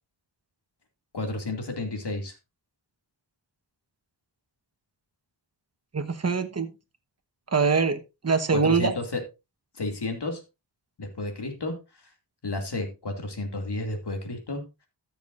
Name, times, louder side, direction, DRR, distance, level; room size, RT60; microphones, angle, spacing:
voice 1, 1.1-2.3 8.5-9.2 9.7-10.4 11.0-12.1 12.4-14.6, left 2 dB, 65° left, 4 dB, 2.4 m, -32 dB
voice 2, 5.9-6.7 7.5-9.0, right 5 dB, 35° right, 8 dB, 1.1 m, -24 dB
13.5 x 7.1 x 2.5 m, 0.26 s
wide cardioid pair, 70°, 44 cm